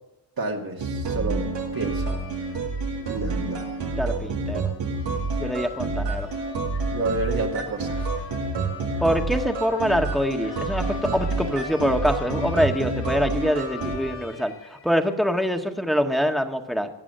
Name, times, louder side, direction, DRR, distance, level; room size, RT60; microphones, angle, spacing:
voice 1, 0.4-2.1 3.1-3.6 6.9-8.1, right 3 dB, 55° right, 0 dB, 2.2 m, -29 dB
sound 1, 0.8-14.0, right 3 dB, 90° right, 2.5 m, -28 dB
sound 2, 1.7-15.4, left 4 dB, 85° left, 4.0 m, -44 dB
voice 2, 4.0-4.7 5.4-6.3 9.0-16.9, equal, ahead, 4 dB, 1.7 m, -24 dB
19.5 x 7.4 x 6.8 m, 1.0 s
cardioid pair, 55°, 42 cm